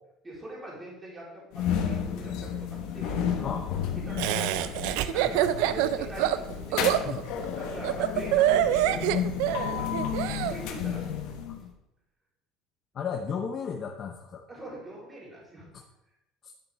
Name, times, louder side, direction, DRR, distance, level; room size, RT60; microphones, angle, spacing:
voice 1, 0.2-3.3 3.9-7.0 7.6-9.1 9.8-10.0 10.5-11.1 14.5-15.7, right 1 dB, 15° right, -5 dB, 3.8 m, -43 dB
sound 1, 1.5-11.7, left 8 dB, 70° left, 1.2 m, -32 dB
Laughter, 4.2-10.5, right 12 dB, 85° right, 0.5 m, -26 dB
voice 2, 12.9-14.4 15.7-15.8 16.4-16.5, left 6 dB, 35° left, 3 dB, 0.8 m, -34 dB
10.5 x 7.2 x 3.5 m, 0.89 s
cardioid pair, 145°, 0 cm